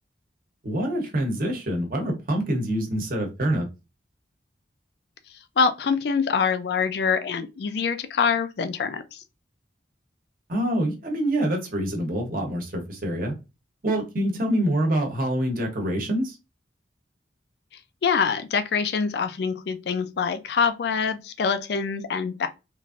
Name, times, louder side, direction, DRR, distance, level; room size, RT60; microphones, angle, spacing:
voice 1, 0.6-3.7 10.5-13.3 13.8-16.4, right 1 dB, 45° right, 0.9 m, -26 dB
voice 2, 5.6-9.2 18.0-22.5, left 6 dB, 60° left, 0.4 m, -25 dB
3.1 x 2.5 x 2.4 m
head